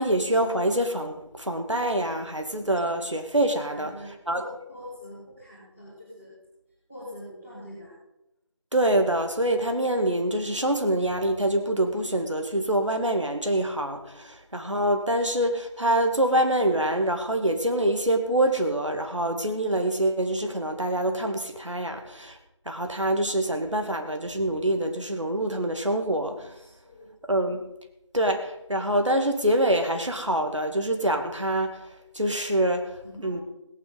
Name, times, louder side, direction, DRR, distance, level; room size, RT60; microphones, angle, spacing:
voice 1, 0.0-3.9 4.3-4.4 8.7-22.4 22.7-26.5 27.3-27.6 28.1-31.7 32.1-32.8 33.2-33.4, right 1 dB, 70° right, 5 dB, 2.1 m, -25 dB
voice 2, 3.6-6.3 6.9-7.9 14.1-14.2 26.5-27.1 33.0-33.4, left 1 dB, 5° right, -18 dB, 2.0 m, -43 dB
17.5 x 9.1 x 5.1 m, 0.85 s
figure-of-eight pair, 175°, 16 cm